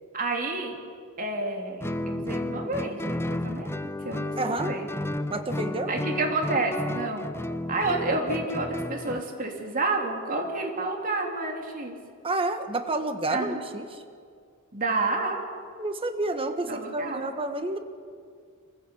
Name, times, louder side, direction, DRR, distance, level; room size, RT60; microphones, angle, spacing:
voice 1, 0.1-0.8 1.2-3.7 4.0-4.9 5.2-5.3 5.9-7.3 7.7-12.0 13.3-13.6 14.7-15.4 16.7-17.3, right 2 dB, 40° right, 2 dB, 3.4 m, -29 dB
Guitar, 1.8-9.3, left 1 dB, 10° left, 0.6 m, -32 dB
voice 2, 4.4-4.7 5.3-5.9 12.2-13.8 15.8-17.8, right 2 dB, 25° right, 7 dB, 1.3 m, -29 dB
25.5 x 15.5 x 8.6 m, 2.2 s
head